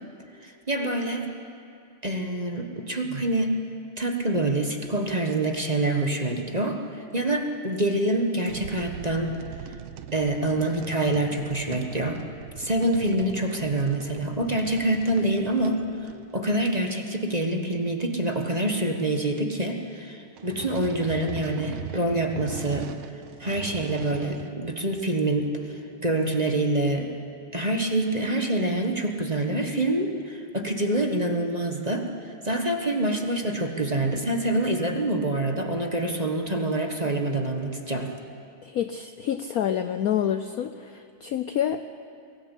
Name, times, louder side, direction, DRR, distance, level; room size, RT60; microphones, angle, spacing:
voice 1, 0.4-1.2 2.0-3.6 4.0-9.3 9.6-9.8 10.1-12.2 12.6-27.1 27.5-38.1, right 1 dB, 20° right, 3 dB, 1.3 m, -26 dB
sound 1, 8.5-16.8 20.4-24.6 24.9-25.5, right 10 dB, 80° right, 1.6 m, -40 dB
voice 2, 38.6-41.9, left 9 dB, 80° left, 10 dB, 0.8 m, -28 dB
23.0 x 17.5 x 8.4 m, 2.4 s
omnidirectional pair, 2.3 m